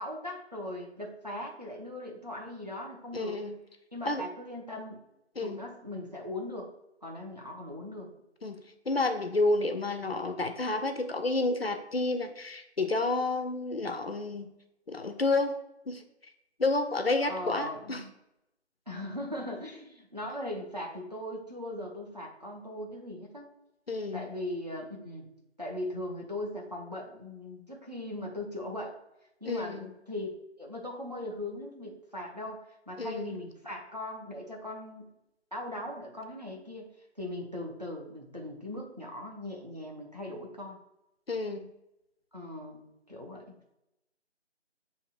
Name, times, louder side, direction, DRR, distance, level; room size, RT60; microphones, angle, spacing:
voice 1, 0.0-3.4 3.9-5.0 5.4-6.7 7.0-8.1 17.2-18.1 18.9-23.5 24.1-25.3 25.6-29.0 29.4-30.3 30.6-35.1 35.5-36.9 37.2-40.8 42.3-43.5, left 1 dB, 35° right, -1 dB, 0.7 m, -39 dB
voice 2, 3.1-3.6 4.1-4.2 5.4-5.6 8.4-14.5 14.9-15.6 15.9-16.0 16.6-18.0 23.9-24.2 29.5-29.9 33.0-33.4 41.3-41.7, left 2 dB, 60° left, 7 dB, 0.5 m, -30 dB
7.2 x 2.8 x 2.4 m, 0.87 s
figure-of-eight pair, 170°, 35 cm